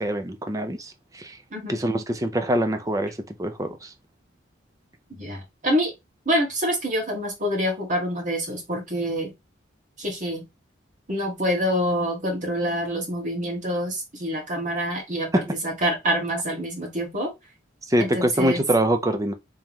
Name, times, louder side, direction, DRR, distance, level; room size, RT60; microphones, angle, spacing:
voice 1, 0.0-1.4 1.7-3.1 3.4-3.9 15.3-15.5 17.9-19.3, right 1 dB, 20° right, 0.6 m, -24 dB
voice 2, 1.5-1.8 5.1-5.9 6.3-9.3 10.0-10.4 11.1-17.3 18.0-18.6, equal, 40° right, 1.8 m, -26 dB
3.6 x 3.5 x 3.0 m
head